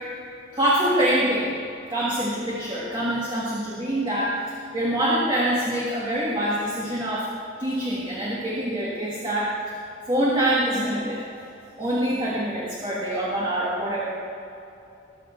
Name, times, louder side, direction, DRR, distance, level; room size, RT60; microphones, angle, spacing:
voice 1, 0.5-1.5 1.9-4.4 4.7-9.6 10.1-11.2 11.8-14.1, right 1 dB, 25° right, -6 dB, 1.7 m, -25 dB
19.5 x 6.9 x 4.4 m, 2.7 s
head